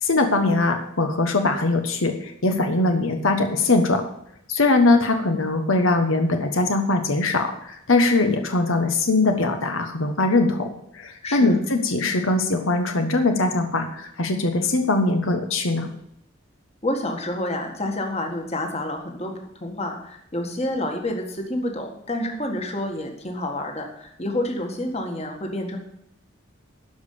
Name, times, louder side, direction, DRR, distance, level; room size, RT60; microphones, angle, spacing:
voice 1, 0.0-4.0 4.5-15.9, left 2 dB, 75° left, 6 dB, 1.2 m, -21 dB
voice 2, 11.2-11.6 16.8-19.3 19.6-25.8, left 1 dB, 30° left, 3 dB, 1.7 m, -28 dB
12.5 x 5.3 x 8.5 m, 0.75 s
head